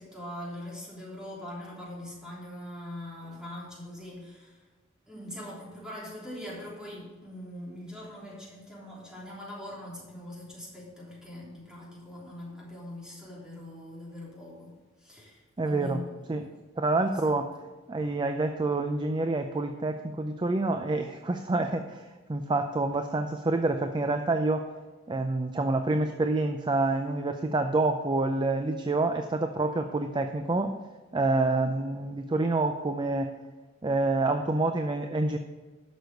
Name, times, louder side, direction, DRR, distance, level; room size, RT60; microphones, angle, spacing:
voice 1, 0.0-4.7 5.1-16.5 17.0-17.4, left 1 dB, 5° right, -6 dB, 3.3 m, -42 dB
voice 2, 15.6-16.0 16.3-16.4 16.8-17.5 17.9-24.6 25.1-30.7 31.1-33.3 33.8-35.4, right 2 dB, 25° right, 6 dB, 0.5 m, -27 dB
11.5 x 6.3 x 5.2 m, 1.3 s
head